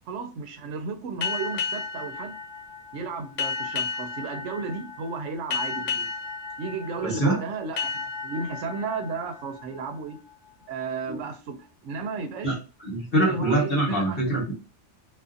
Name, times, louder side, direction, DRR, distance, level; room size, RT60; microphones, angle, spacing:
voice 1, 0.1-2.3 2.9-6.1 6.6-10.2 10.7-12.6 13.2-14.4, right 4 dB, 80° right, 0.9 m, -34 dB
sound 1, 1.2-10.5, left 5 dB, 80° left, 1.0 m, -33 dB
voice 2, 7.0-7.4 11.1-11.2 12.4-12.5 12.8-14.5, right 1 dB, 50° left, 1.2 m, -24 dB
2.5 x 2.5 x 2.4 m
omnidirectional pair, 1.3 m